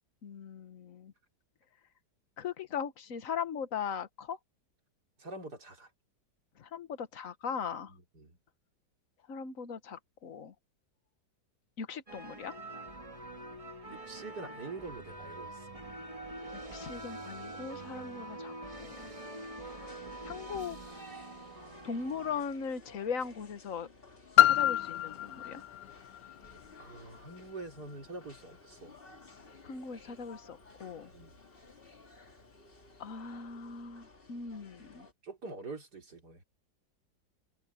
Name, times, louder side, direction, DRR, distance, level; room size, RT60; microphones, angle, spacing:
voice 1, 0.2-1.1 2.4-4.4 6.6-7.9 9.3-10.5 11.8-12.5 16.7-19.1 19.8-19.9 20.2-20.8 21.8-23.9 24.4-25.6 29.6-31.1 33.0-35.1, left 6 dB, 50° left, 1.6 m, -39 dB
voice 2, 5.2-5.9 7.9-8.4 13.9-15.7 26.8-28.9 31.0-31.3 35.2-36.4, right 3 dB, 65° right, 4.4 m, -45 dB
sound 1, 12.1-22.4, right 2 dB, 20° right, 2.0 m, -45 dB
sound 2, 18.9-35.1, left 2 dB, 30° left, 2.4 m, -55 dB
Piano, 24.4-29.8 30.5-30.6, left 13 dB, 70° left, 0.9 m, -30 dB
omnidirectional pair, 1.9 m